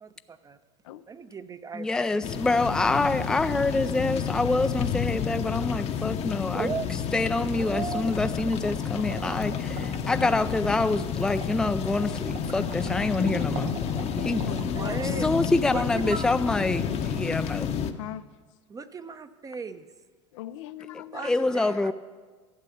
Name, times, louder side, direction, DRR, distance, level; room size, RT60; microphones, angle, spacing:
voice 1, 0.0-0.6 1.1-2.3 6.5-7.0 7.6-8.1 14.3-14.4 14.7-15.3 15.6-17.3 18.7-19.9 21.1-21.9, right 5 dB, 25° right, 11 dB, 0.7 m, -37 dB
voice 2, 1.7-6.7 7.1-13.7 14.3-14.4 15.2-17.7 21.2-21.9, left 2 dB, 5° left, 10 dB, 0.4 m, -26 dB
sound 1, 2.2-17.9, left 8 dB, 45° left, 0.9 m, -30 dB
voice 3, 5.4-6.4 14.1-15.3 17.9-18.3 20.3-21.4, left 13 dB, 80° left, 12 dB, 0.5 m, -40 dB
sound 2, 6.8-18.0, right 7 dB, 75° right, 1.0 m, -42 dB
12.0 x 8.1 x 7.1 m, 1.4 s
supercardioid pair, 100°, 15 cm